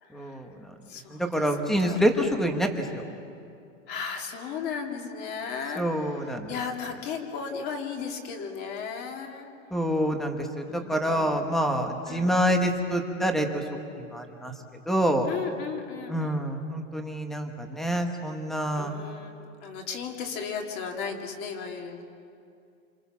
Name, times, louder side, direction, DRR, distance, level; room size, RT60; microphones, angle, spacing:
voice 1, 0.1-0.5 1.1-3.0 5.8-6.5 9.7-13.6 14.1-14.5 14.9-15.3 16.1-18.9, equal, ahead, 4 dB, 1.1 m, -26 dB
voice 2, 0.9-1.5 1.8-2.4 3.9-9.5 10.7-11.5 12.1-12.3 15.3-16.4 18.7-22.0, left 6 dB, 25° left, 3 dB, 2.4 m, -36 dB
28.5 x 26.5 x 7.2 m, 2.5 s
supercardioid pair, 170°, 40 cm